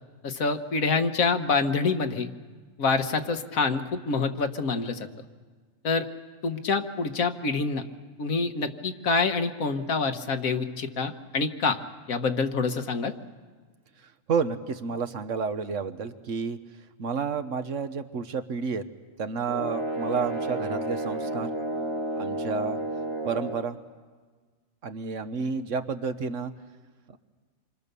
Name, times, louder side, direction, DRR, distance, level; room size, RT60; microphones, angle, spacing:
voice 1, 0.2-2.3 2.8-5.1 5.8-6.1 6.4-7.8 8.2-11.8 12.1-13.1, left 4 dB, 80° left, 7 dB, 1.7 m, -26 dB
voice 2, 14.0-16.6 17.0-18.8 19.2-21.5 22.1-22.8 23.2-23.8 24.8-26.5, right 5 dB, 65° right, 10 dB, 1.3 m, -30 dB
sound 1, 19.5-23.7, right 1 dB, 20° right, 1.3 m, -31 dB
28.0 x 24.5 x 6.8 m, 1.5 s
omnidirectional pair, 1.4 m